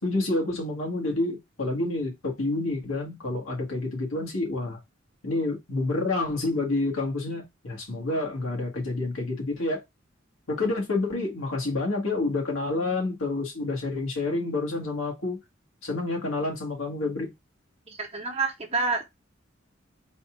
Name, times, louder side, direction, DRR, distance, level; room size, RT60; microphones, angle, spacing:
voice 1, 0.0-4.8 5.2-9.8 10.5-15.4 15.8-17.3, left 2 dB, 90° left, 1.8 m, -28 dB
voice 2, 17.9-19.0, right 3 dB, 30° right, 1.0 m, -28 dB
4.1 x 2.5 x 4.4 m
head